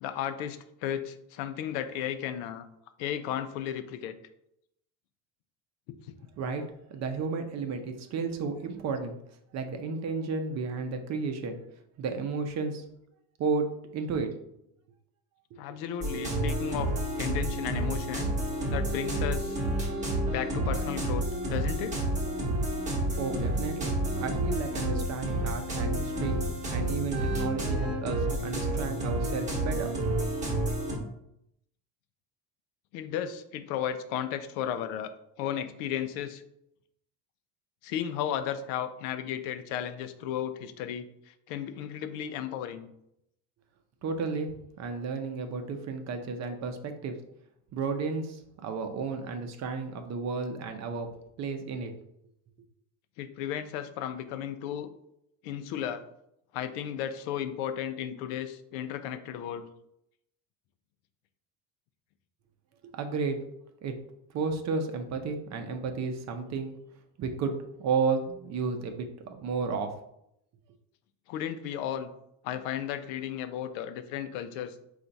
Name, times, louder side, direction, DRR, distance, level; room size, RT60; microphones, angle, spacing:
voice 1, 0.0-2.7 3.0-4.1 15.6-16.9 17.2-18.3 18.7-19.6 20.3-22.0 30.6-30.7 32.9-35.1 35.4-36.4 37.8-42.9 53.2-54.9 55.4-56.0 56.5-59.7 71.3-72.1 72.4-74.7, left 10 dB, 90° left, 10 dB, 0.6 m, -34 dB
voice 2, 6.9-9.2 9.5-11.6 12.0-12.8 13.4-13.7 13.9-14.3 15.5-15.6 23.2-26.4 26.7-29.9 44.0-47.2 47.7-51.1 51.4-51.9 62.8-63.4 63.8-63.9 64.3-66.8 67.2-69.9, right 4 dB, 40° right, 6 dB, 0.6 m, -32 dB
sound 1, 16.0-31.0, right 1 dB, 15° right, 1.0 m, -30 dB
4.4 x 2.5 x 3.9 m, 0.78 s
cardioid pair, 135°, 41 cm